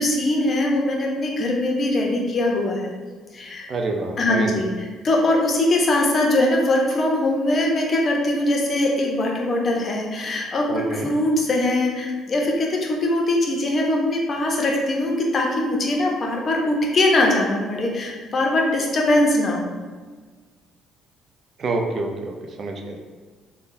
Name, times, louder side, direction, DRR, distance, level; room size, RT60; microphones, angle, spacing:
voice 1, 0.0-2.9 3.3-3.7 4.2-4.7 5.0-10.6 10.9-19.7, left 1 dB, 45° left, 0 dB, 0.6 m, -21 dB
voice 2, 3.7-4.6 10.7-11.1 21.6-23.0, right 3 dB, 55° right, 3 dB, 0.5 m, -27 dB
3.5 x 2.2 x 2.6 m, 1.4 s
hypercardioid pair, 55°, 0 cm